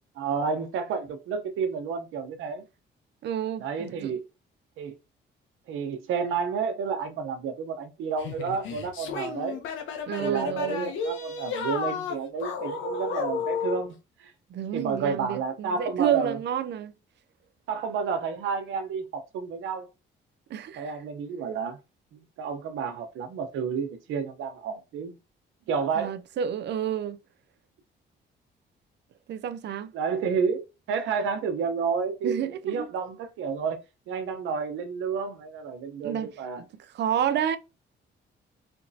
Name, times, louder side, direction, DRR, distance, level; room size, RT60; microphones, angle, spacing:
voice 1, 0.2-2.6 3.6-4.2 4.8-5.0 5.7-9.6 10.2-14.3 14.7-16.4 17.7-19.9 20.8-21.8 22.1-25.1 25.7-26.2 29.9-30.6 30.9-32.3 32.6-33.8 34.1-36.6, right 6 dB, 85° right, 0.9 m, -30 dB
voice 2, 3.2-4.2 10.1-10.9 14.5-16.9 20.5-21.0 26.0-27.2 29.3-29.9 32.2-32.9 36.0-36.3 36.6-37.6, right 9 dB, 60° right, 0.5 m, -30 dB
sound 1, 8.2-13.9, left 5 dB, 80° left, 0.9 m, -32 dB
4.4 x 2.9 x 2.7 m
cardioid pair, 90°, 20 cm